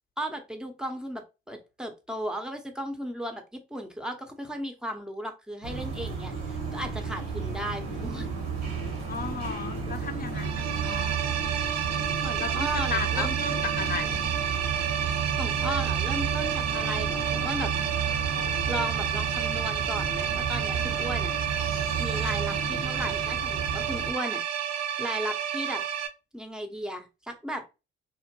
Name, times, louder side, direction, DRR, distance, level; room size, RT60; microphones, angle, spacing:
voice 1, 0.2-1.2 1.5-8.4 12.2-13.3 15.4-17.7 18.7-21.3 22.0-24.4 24.7-25.8 26.3-27.6, equal, 5° right, 0.7 m, -35 dB
sound 1, 5.6-24.1, right 5 dB, 80° right, 0.9 m, -32 dB
voice 2, 9.1-11.2 12.4-14.2, left 5 dB, 30° left, 0.7 m, -35 dB
sound 2, 10.3-26.1, right 9 dB, 60° right, 0.5 m, -30 dB
2.8 x 2.1 x 2.8 m
hypercardioid pair, 50°, 29 cm